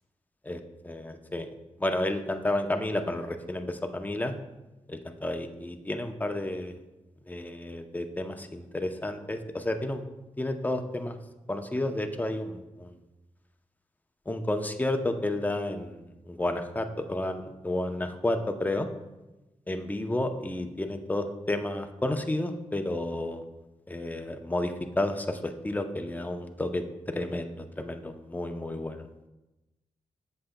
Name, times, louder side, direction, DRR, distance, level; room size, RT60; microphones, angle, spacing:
voice 1, 0.4-1.5 1.8-4.3 4.9-6.8 7.3-10.0 10.4-11.2 11.5-12.9 14.3-18.9 19.7-23.4 23.9-29.1, left 1 dB, 15° left, 6 dB, 0.6 m, -31 dB
7.4 x 7.0 x 2.2 m, 1.0 s
cardioid pair, 60°, 12 cm